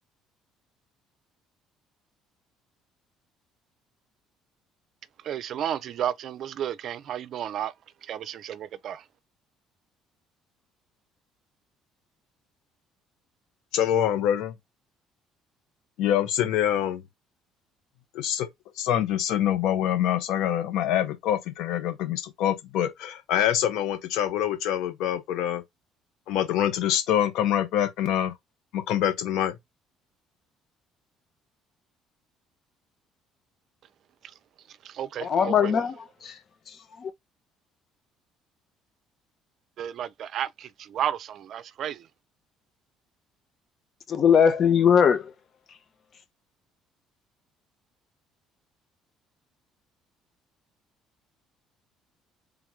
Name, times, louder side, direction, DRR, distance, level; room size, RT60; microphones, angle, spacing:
voice 1, 5.2-7.7 8.0-9.0 34.8-35.7 39.8-42.1, right 10 dB, 60° right, 0.4 m, -32 dB
voice 2, 13.7-14.5 16.0-17.0 18.1-18.5 18.8-25.6 26.3-28.3 28.7-29.5, left 10 dB, 75° left, 1.1 m, -25 dB
voice 3, 35.2-36.4 36.7-37.1 44.1-45.3 45.7-45.8, left 7 dB, 50° left, 0.9 m, -21 dB
3.8 x 3.0 x 3.6 m
hypercardioid pair, 65°, 0 cm